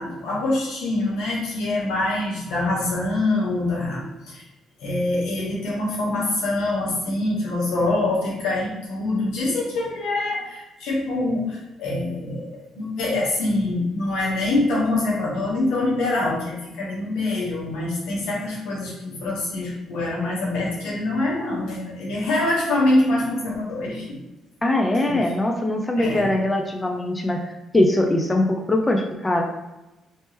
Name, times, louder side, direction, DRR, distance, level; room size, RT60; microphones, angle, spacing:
voice 1, 0.0-4.5 4.8-24.2 25.1-25.2 26.0-26.3, left 2 dB, 85° left, -4 dB, 1.2 m, -25 dB
voice 2, 24.6-27.4 27.7-29.4, left 1 dB, 15° left, 2 dB, 0.4 m, -21 dB
3.3 x 2.9 x 3.0 m, 1.0 s
cardioid pair, 90°, 0 cm